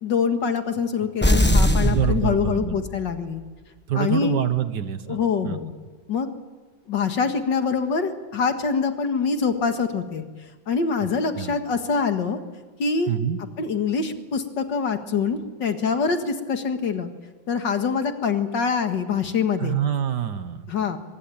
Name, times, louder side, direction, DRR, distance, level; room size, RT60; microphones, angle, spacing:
voice 1, 0.0-3.4 4.0-4.4 5.1-5.7 6.1-6.3 6.9-10.2 10.7-12.4 12.8-13.2 13.6-17.1 17.5-19.8 20.7-21.0, left 5 dB, 65° left, 7 dB, 2.3 m, -24 dB
sound 1, 1.2-3.1, equal, 5° left, 1.0 m, -20 dB
voice 2, 1.8-2.8 3.9-5.2 5.4-5.6 11.4-11.6 13.1-13.4 19.6-20.7, right 9 dB, 60° right, 11 dB, 1.7 m, -25 dB
23.0 x 22.0 x 8.9 m, 1.4 s
omnidirectional pair, 2.1 m